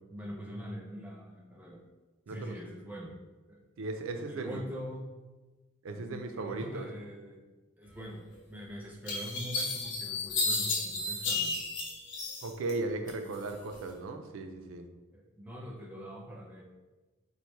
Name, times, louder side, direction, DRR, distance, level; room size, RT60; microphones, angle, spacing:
voice 1, 0.1-1.8 2.3-3.2 3.5-3.6 4.1-5.1 5.9-7.4 7.8-11.6 13.0-13.3 15.1-16.6, equal, 10° right, -1 dB, 0.5 m, -43 dB
voice 2, 3.8-4.6 5.8-6.9 12.4-14.9, right 3 dB, 75° right, 6 dB, 0.4 m, -37 dB
sound 1, 8.3-8.4 9.1-12.7 13.1-13.8, left 3 dB, 55° left, 0.8 m, -33 dB
3.1 x 2.5 x 4.4 m, 1.2 s
head